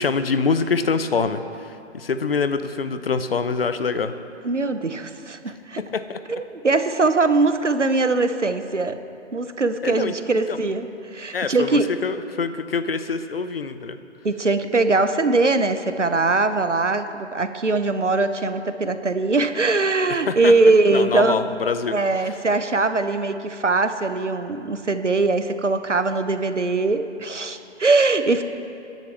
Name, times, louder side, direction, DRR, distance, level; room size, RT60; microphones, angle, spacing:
voice 1, 0.0-4.1 5.8-6.2 9.8-10.1 10.5-10.6 11.3-14.0 20.1-20.5 20.9-21.9 22.2-22.3, left 5 dB, 55° left, 11 dB, 0.8 m, -25 dB
voice 2, 4.4-5.8 6.3-9.0 9.3-11.9 14.2-21.4 21.9-28.4, right 3 dB, 85° right, 10 dB, 1.0 m, -21 dB
27.0 x 10.5 x 3.4 m, 2.6 s
figure-of-eight pair, 140°, 35 cm